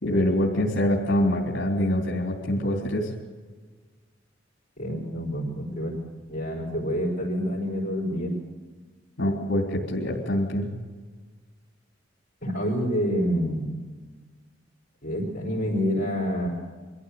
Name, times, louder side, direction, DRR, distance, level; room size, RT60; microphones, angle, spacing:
voice 1, 0.0-3.1 9.2-10.7, left 1 dB, 65° left, -1 dB, 3.2 m, -25 dB
voice 2, 4.8-6.0 6.3-8.3 12.4-13.7 15.0-16.5, equal, 45° left, -4 dB, 4.8 m, -27 dB
23.0 x 14.5 x 8.4 m, 1.4 s
head